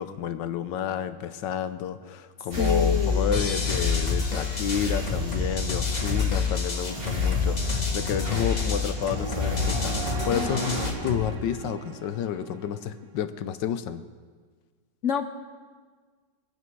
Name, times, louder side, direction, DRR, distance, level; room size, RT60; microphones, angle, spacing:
voice 1, 0.0-14.0, left 8 dB, 80° left, 11 dB, 1.4 m, -31 dB
sound 1, 2.5-10.9, left 5 dB, 30° right, 3.1 m, -28 dB
voice 2, 2.6-3.4 10.3-10.5 15.0-15.3, left 5 dB, 55° left, 8 dB, 1.0 m, -27 dB
sound 2, 3.3-11.3, left 3 dB, 25° left, 1.3 m, -32 dB
sound 3, 9.0-13.1, right 5 dB, 70° right, 1.9 m, -40 dB
23.5 x 9.4 x 4.7 m, 1.5 s
omnidirectional pair, 1.9 m